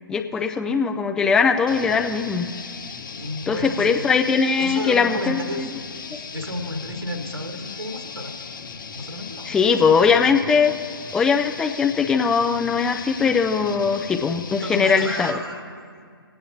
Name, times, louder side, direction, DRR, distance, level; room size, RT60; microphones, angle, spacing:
voice 1, 0.1-2.5 3.5-5.7 9.5-10.7 11.1-15.4, left 5 dB, 5° left, 4 dB, 0.3 m, -20 dB
sound 1, 1.7-15.4, left 5 dB, 60° left, 0.9 m, -37 dB
voice 2, 3.2-4.1 4.6-5.7 6.1-8.4 8.9-9.8 14.6-15.6, left 1 dB, 85° right, 4 dB, 1.6 m, -32 dB
22.0 x 8.6 x 2.8 m, 2.1 s
figure-of-eight pair, 130°, 12 cm